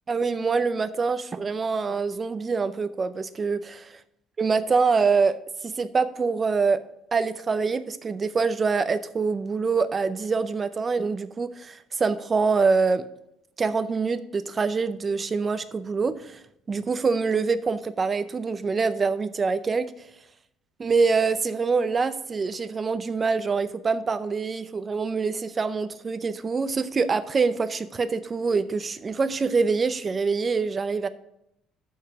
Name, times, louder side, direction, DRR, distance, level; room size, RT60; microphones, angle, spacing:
voice 1, 0.1-3.8 4.4-5.4 5.6-6.8 7.1-13.1 13.6-16.4 16.7-19.9 20.8-31.1, right 4 dB, 25° right, 13 dB, 0.5 m, -25 dB
6.8 x 5.5 x 6.5 m, 0.79 s
cardioid pair, 150°, 0 cm